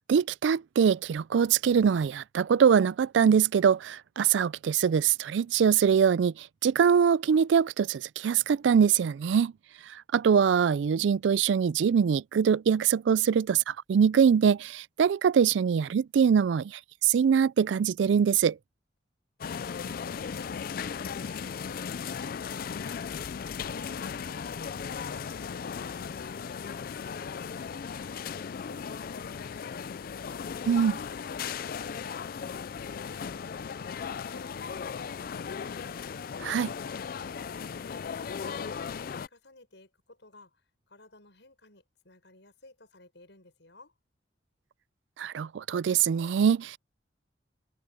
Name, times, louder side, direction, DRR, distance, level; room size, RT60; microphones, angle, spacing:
voice 1, 0.0-9.5 9.9-18.6 30.7-31.0 36.4-36.7 45.2-46.8, right 7 dB, 75° right, 0.3 m, -23 dB
voice 2, 19.4-21.0 21.6-25.0 25.4-28.2 28.5-29.9 30.8-35.6 36.8-38.2 38.5-43.9, left 2 dB, 70° left, 6.6 m, -56 dB
sound 1, 19.4-39.3, left 6 dB, 50° left, 0.4 m, -37 dB
head